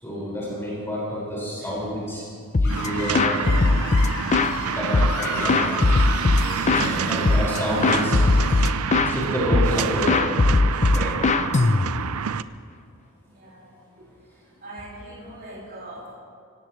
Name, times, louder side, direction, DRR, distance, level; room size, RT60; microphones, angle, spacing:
voice 1, 0.0-2.2 2.6-3.4 4.6-5.6 6.4-8.3 9.0-10.2 10.8-11.2, equal, 10° left, -7 dB, 5.4 m, -28 dB
sound 1, 2.5-2.9 3.1-4.6 4.9-6.9 7.3-7.6 7.8-9.2 9.5-9.8 10.1-12.2, left 3 dB, 35° left, 0.5 m, -19 dB
Screech, 2.6-8.7, left 3 dB, 75° left, 4.3 m, -34 dB
sound 2, 2.7-12.4, right 7 dB, 80° right, 0.5 m, -28 dB
voice 2, 13.3-13.7 14.0-14.1 14.6-16.1, right 1 dB, 50° right, -7 dB, 5.5 m, -41 dB
24.5 x 17.5 x 3.2 m, 2.1 s
head